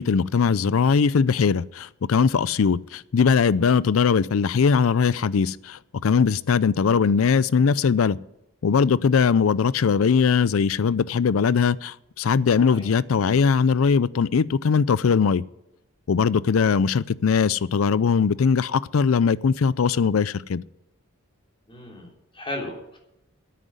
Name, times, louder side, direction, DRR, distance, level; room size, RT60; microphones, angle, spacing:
voice 1, 0.0-8.2 8.6-15.4 16.1-20.6, left 6 dB, 80° left, 0.5 m, -20 dB
voice 2, 12.7-13.0 21.7-23.0, left 1 dB, 25° left, 3.4 m, -36 dB
10.0 x 9.2 x 9.4 m
head